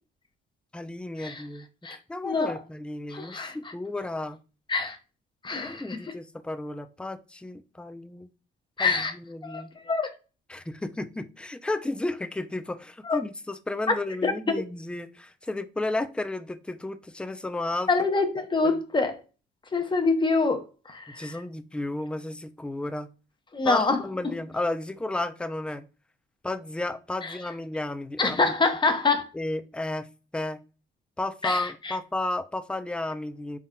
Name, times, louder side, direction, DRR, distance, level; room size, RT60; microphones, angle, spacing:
voice 1, 0.7-1.7 2.1-4.4 5.6-8.3 8.8-9.7 10.5-17.9 21.2-23.1 23.6-25.8 26.4-28.5 29.3-30.1 30.3-30.6 31.2-33.6, left 2 dB, 5° left, 0.4 m, -33 dB
voice 2, 2.2-2.5 3.1-3.6 4.7-5.0 5.4-6.0 8.8-9.1 9.4-10.1 13.0-13.2 14.2-14.6 17.9-19.2 19.7-21.4 23.5-24.0 27.2-27.4 28.2-29.3 31.4-32.0, left 3 dB, 25° left, 0.7 m, -26 dB
4.0 x 3.7 x 2.2 m
cardioid pair, 90°, 20 cm